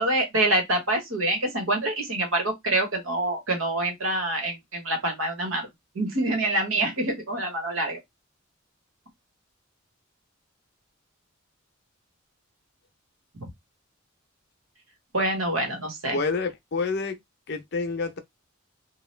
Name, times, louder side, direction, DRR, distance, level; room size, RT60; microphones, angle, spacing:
voice 1, 0.0-5.7 5.9-8.0 15.1-16.2, right 1 dB, 90° right, 1.2 m, -26 dB
voice 2, 16.1-17.2 17.5-18.2, left 4 dB, 55° left, 0.6 m, -28 dB
2.8 x 2.2 x 3.2 m
head